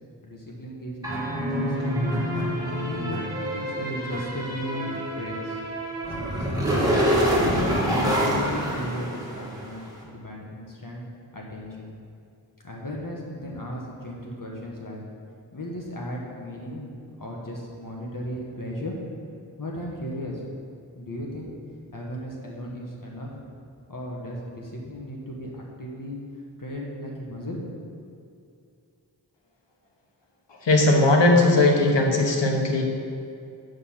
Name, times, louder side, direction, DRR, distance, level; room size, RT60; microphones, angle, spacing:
voice 1, 0.2-2.2 2.8-5.7 6.2-7.8 8.2-11.0 11.3-11.9 12.6-15.0 15.5-16.9 17.2-19.0 19.6-20.4 20.9-21.5 21.9-23.3 23.9-26.2 26.6-27.7, equal, 50° left, -2 dB, 1.7 m, -36 dB
sound 1, 1.0-9.7, equal, 10° right, 2.2 m, -26 dB
voice 2, 30.6-32.8, left 2 dB, 85° left, 1 dB, 1.2 m, -18 dB
8.3 x 5.4 x 5.8 m, 2.5 s
cardioid pair, 45°, 42 cm